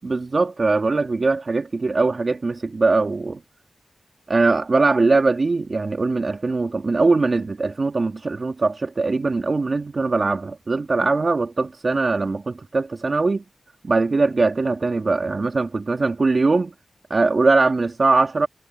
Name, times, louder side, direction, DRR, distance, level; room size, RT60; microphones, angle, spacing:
voice 1, 0.0-3.4 4.3-13.4 13.9-16.7 17.1-18.5, right 3 dB, 55° right, 2.7 m, -21 dB
cardioid pair, 55°, 0 cm